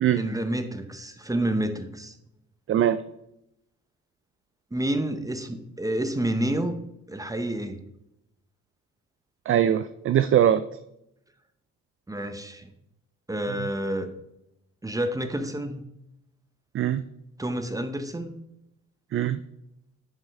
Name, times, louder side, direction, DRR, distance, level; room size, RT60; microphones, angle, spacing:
voice 1, 0.1-2.2 4.7-6.7 7.1-7.8 12.1-12.7 13.3-14.1 14.8-15.8 17.4-18.3, right 1 dB, 10° right, 9 dB, 0.9 m, -29 dB
voice 2, 9.5-10.6 16.7-17.0 19.1-19.4, right 10 dB, 45° right, 13 dB, 0.4 m, -21 dB
11.0 x 5.4 x 3.6 m, 0.82 s
cardioid pair, 90°, 30 cm